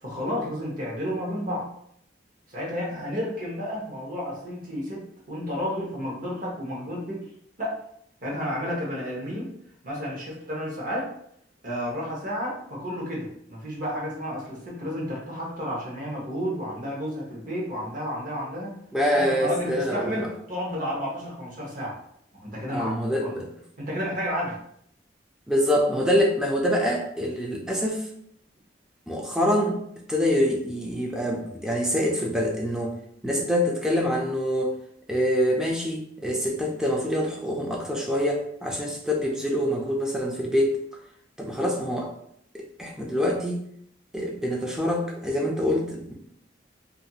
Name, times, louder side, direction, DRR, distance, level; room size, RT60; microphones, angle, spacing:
voice 1, 0.0-1.7 2.5-7.3 7.6-7.8 8.2-9.5 9.8-11.1 11.6-18.7 19.1-22.0 22.4-23.4 23.8-24.6, equal, 45° right, -4 dB, 0.9 m, -31 dB
voice 2, 18.9-20.3 22.7-23.5 25.5-28.1 29.1-29.8 30.1-33.0 33.2-34.7 35.1-40.8 41.4-42.1 42.5-43.6 44.1-46.1, equal, 5° right, -1 dB, 0.4 m, -25 dB
2.5 x 2.3 x 2.7 m, 0.70 s
head